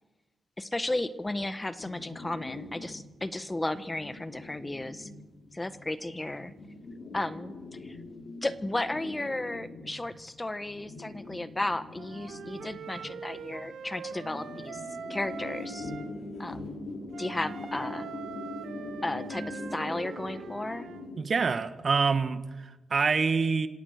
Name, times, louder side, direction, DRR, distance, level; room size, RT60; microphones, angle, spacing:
voice 1, 0.6-5.1 5.5-6.5 7.1-7.5 7.8-8.0 8.4-14.8 15.1-15.9 16.4-16.8 17.2-18.1 19.0-20.9, left 2 dB, 20° left, 13 dB, 1.4 m, -34 dB
sound 1, 1.8-21.3, left 2 dB, 65° left, 4.1 m, -43 dB
Wind instrument woodwind instrument, 12.0-16.1 17.1-21.0, right 7 dB, 75° right, 2.5 m, -43 dB
voice 2, 21.2-23.7, right 5 dB, 50° right, 11 dB, 1.7 m, -26 dB
26.5 x 17.0 x 6.7 m, 1.1 s
supercardioid pair, 55°, 0 cm